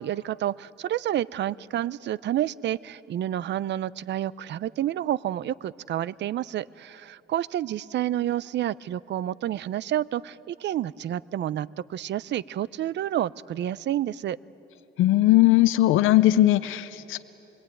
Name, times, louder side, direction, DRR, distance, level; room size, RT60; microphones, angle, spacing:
voice 1, 0.0-14.4, right 12 dB, 65° right, 20 dB, 0.5 m, -29 dB
voice 2, 15.0-17.2, left 15 dB, 90° left, 12 dB, 0.6 m, -19 dB
23.5 x 22.5 x 9.1 m, 3.0 s
cardioid pair, 90°, 20 cm